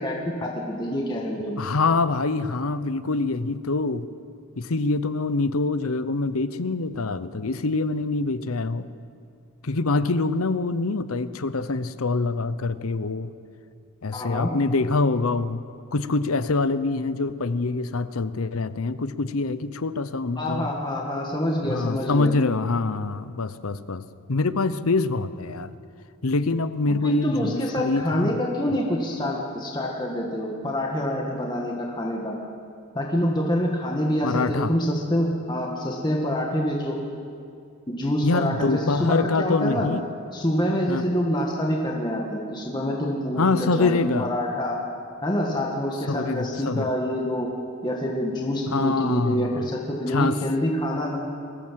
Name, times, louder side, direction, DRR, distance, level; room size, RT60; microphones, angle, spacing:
voice 1, 0.0-1.6 14.1-14.5 20.4-22.3 26.9-32.3 32.9-37.0 37.9-39.9 40.3-44.8 45.2-47.5 47.8-51.2, equal, 20° left, -1 dB, 1.8 m, -26 dB
voice 2, 1.6-4.1 4.6-8.9 9.6-13.3 14.0-15.6 15.9-20.7 21.7-24.0 24.3-25.7 26.2-28.3 28.7-28.8 34.2-34.7 38.2-40.1 40.9-41.0 43.4-44.3 46.1-46.9 48.7-49.7 50.1-50.4, left 3 dB, 80° left, 14 dB, 0.8 m, -25 dB
22.5 x 15.5 x 7.6 m, 2.4 s
head